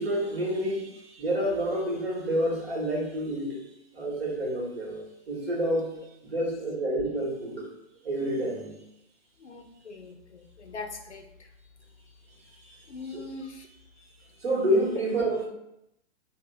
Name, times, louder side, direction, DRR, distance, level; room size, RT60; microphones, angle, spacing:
voice 1, 0.0-3.6 3.9-5.0 5.3-5.9 6.2-7.7 8.0-8.7 12.6-12.8 13.1-13.2 14.4-15.5, right 1 dB, 65° right, -3 dB, 1.5 m, -28 dB
voice 2, 9.4-11.5 12.9-13.7, left 3 dB, 85° left, 5 dB, 0.6 m, -42 dB
3.4 x 2.3 x 3.5 m, 0.82 s
figure-of-eight pair, 110°, 33 cm